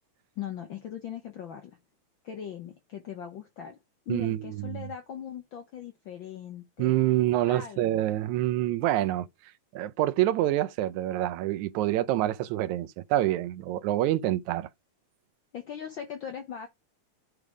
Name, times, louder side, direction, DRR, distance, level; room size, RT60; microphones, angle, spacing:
voice 1, 0.4-1.7 2.2-3.8 4.1-6.9 7.5-8.1 15.5-16.7, left 9 dB, 70° left, 1.1 m, -40 dB
voice 2, 4.1-4.9 6.8-9.3 9.7-14.7, right 14 dB, 85° right, 2.0 m, -27 dB
9.2 x 3.5 x 4.8 m
omnidirectional pair, 3.3 m